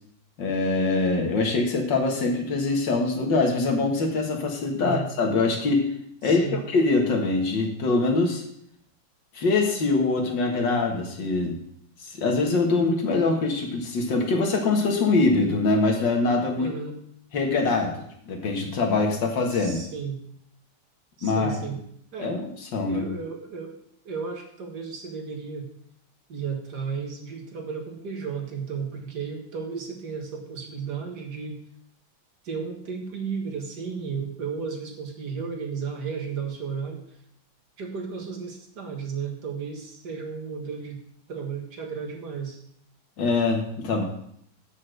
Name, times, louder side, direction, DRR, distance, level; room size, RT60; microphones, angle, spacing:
voice 1, 0.4-5.9 6.2-8.4 9.3-11.6 12.0-16.7 17.3-17.9 18.3-19.8 21.2-21.5 22.2-23.1 43.2-44.0, left 3 dB, 65° left, 2 dB, 2.3 m, -23 dB
voice 2, 4.8-5.1 6.2-6.6 16.6-17.0 19.5-20.2 21.2-21.8 22.1-22.4 22.8-23.8 24.1-25.7 26.3-31.6 32.4-37.0 37.8-41.0 41.3-42.6, right 5 dB, 55° right, 2 dB, 2.1 m, -34 dB
8.5 x 6.4 x 6.5 m, 0.68 s
omnidirectional pair, 2.2 m